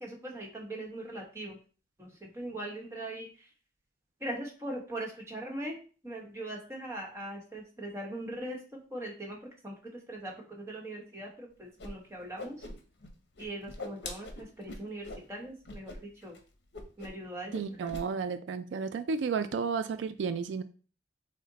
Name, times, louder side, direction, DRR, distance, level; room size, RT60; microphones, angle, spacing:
voice 1, 0.0-1.6 2.0-3.3 4.2-5.8 6.0-9.4 9.6-12.6 13.4-16.4 17.0-17.9, right 1 dB, 15° right, -2 dB, 1.1 m, -40 dB
Whoosh swoosh swish, 11.8-11.9 12.2-13.1 13.4-15.2 15.6-16.0 16.2-16.4 16.7-17.2 17.5-18.0, left 2 dB, 70° left, 0.8 m, -42 dB
voice 2, 17.5-20.6, right 5 dB, 85° right, 11 dB, 0.3 m, -32 dB
6.4 x 2.1 x 3.9 m, 0.38 s
head